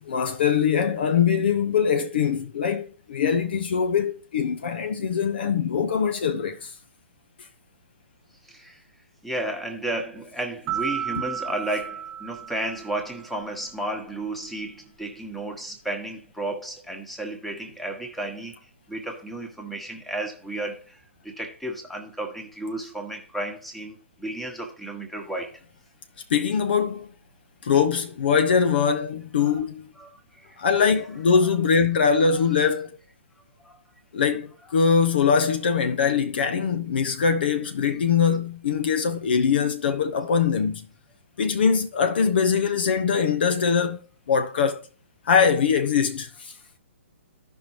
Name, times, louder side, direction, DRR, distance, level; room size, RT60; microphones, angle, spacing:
voice 1, 0.0-6.7 26.3-27.1 27.6-29.9 30.6-33.0 34.1-40.9 41.4-44.9 45.2-46.5, left 6 dB, 55° left, 0.8 m, -22 dB
voice 2, 8.4-8.8 9.2-25.6 29.4-29.6 30.0-30.7 32.3-32.4 33.6-33.8, right 1 dB, ahead, 1.5 m, -33 dB
sound 1, 10.7-13.4, right 9 dB, 25° right, 1.0 m, -33 dB
14.5 x 5.4 x 3.0 m
figure-of-eight pair, 125°, 7 cm